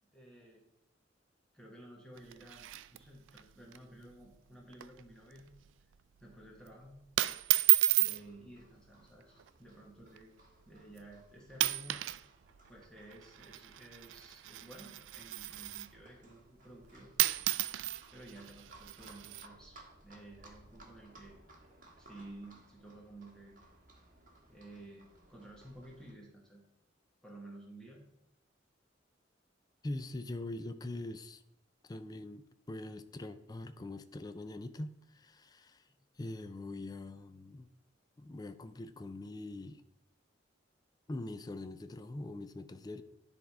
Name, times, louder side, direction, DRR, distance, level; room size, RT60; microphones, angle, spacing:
voice 1, 0.1-0.7 1.5-5.4 6.2-7.0 7.9-10.3 10.7-12.0 12.7-17.1 18.1-21.4 22.0-23.6 24.5-26.6 27.2-28.0, right 1 dB, 5° left, 1.3 m, -53 dB
sound 1, 2.2-3.4 3.7-3.8 4.1-4.4 4.7-5.0 5.4-5.7 6.4-6.7 7.2-8.2 9.2-9.5 10.2-10.3 11.0-11.2 11.5-12.2 12.5-16.0 16.8-16.9 17.2-19.5, right 19 dB, 85° right, 0.3 m, -32 dB
Livestock farm animals working animals, 8.0-26.1, right 2 dB, 45° right, 1.4 m, -61 dB
voice 2, 29.8-31.4 31.8-35.9 36.2-37.7 38.2-39.8 41.1-43.0, left 2 dB, 20° left, 0.4 m, -43 dB
10.0 x 3.5 x 4.7 m
head